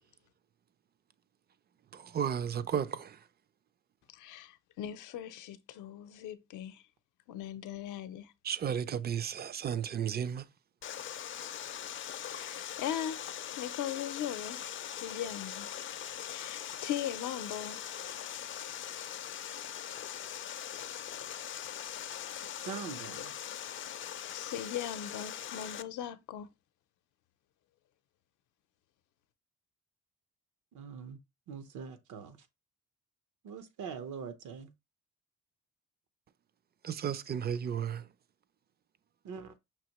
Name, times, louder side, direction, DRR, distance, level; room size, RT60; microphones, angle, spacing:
voice 1, 1.9-3.2 8.4-10.5 36.8-38.1, right 8 dB, 35° right, 0.4 m, -33 dB
voice 2, 4.1-6.8 7.3-8.3 12.2-14.6 14.9-15.7 16.2-17.9 24.2-26.5, left 10 dB, 85° left, 0.6 m, -39 dB
Water, 10.8-25.8, left 10 dB, 40° left, 0.4 m, -41 dB
voice 3, 22.6-23.3 30.7-31.2 31.5-32.4 33.4-34.7 39.2-39.5, right 6 dB, 75° right, 0.9 m, -43 dB
5.8 x 2.8 x 2.9 m
cardioid pair, 90°, 30 cm